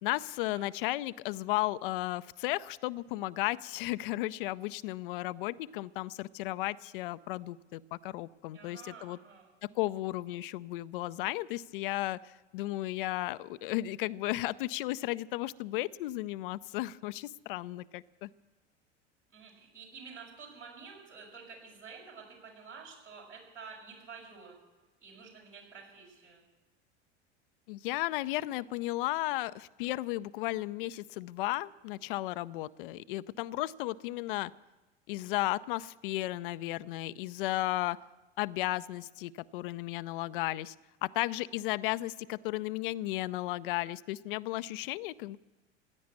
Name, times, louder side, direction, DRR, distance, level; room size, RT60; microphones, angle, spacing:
voice 1, 0.0-9.2 9.6-18.3 27.7-34.5 35.1-38.0 38.4-40.7 41.0-45.4, left 17 dB, 50° left, 16 dB, 0.5 m, -34 dB
voice 2, 8.5-9.5 19.3-24.6 25.0-26.4, right 5 dB, 80° right, -3 dB, 6.6 m, -50 dB
16.0 x 10.5 x 8.6 m, 1.1 s
figure-of-eight pair, 75°, 35 cm